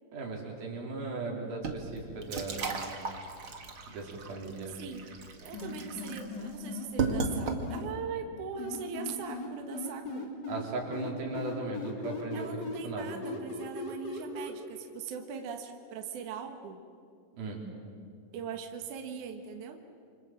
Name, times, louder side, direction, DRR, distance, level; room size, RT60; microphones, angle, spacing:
voice 1, 0.1-2.8 3.9-4.8 10.5-12.5 12.8-13.1 17.3-17.6, right 3 dB, 90° right, 0 dB, 5.7 m, -37 dB
sound 1, 1.6-8.0, right 4 dB, 40° right, 2.3 m, -36 dB
voice 2, 5.4-10.3 12.3-16.8 18.3-19.8, right 6 dB, 65° right, 5 dB, 2.7 m, -40 dB
sound 2, 5.5-7.8 8.6-10.6 10.9-14.5, left 3 dB, 30° left, 3.2 m, -38 dB
27.5 x 25.5 x 7.6 m, 2.3 s
omnidirectional pair, 4.1 m